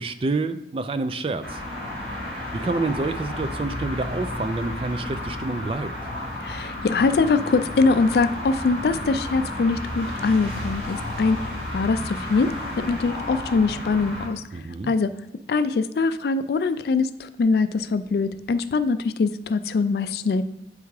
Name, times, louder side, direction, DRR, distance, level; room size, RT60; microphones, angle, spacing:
voice 1, 0.0-1.6 2.5-5.9 14.5-14.9, right 3 dB, 30° right, 11 dB, 0.3 m, -28 dB
sound 1, 1.4-14.3, left 1 dB, 85° right, 2.6 m, -32 dB
voice 2, 6.4-11.4 11.7-14.4 14.9-15.1 15.5-20.4, left 4 dB, 60° left, 13 dB, 0.3 m, -23 dB
8.2 x 3.5 x 4.8 m, 0.86 s
head